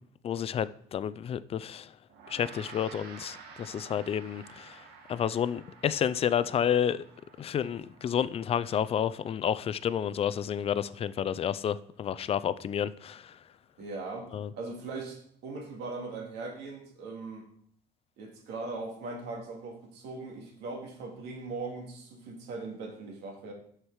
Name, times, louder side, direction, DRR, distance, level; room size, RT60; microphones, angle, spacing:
voice 1, 0.2-1.9 2.3-4.8 5.1-7.0 7.4-13.3 14.3-14.5, left 9 dB, 35° left, 0.4 m, -30 dB
Gong, 2.1-11.7, right 5 dB, 70° right, 1.5 m, -52 dB
voice 2, 13.8-17.5 18.2-23.5, right 3 dB, 90° right, 2.1 m, -40 dB
6.4 x 5.9 x 4.7 m
cardioid pair, 110°, 17 cm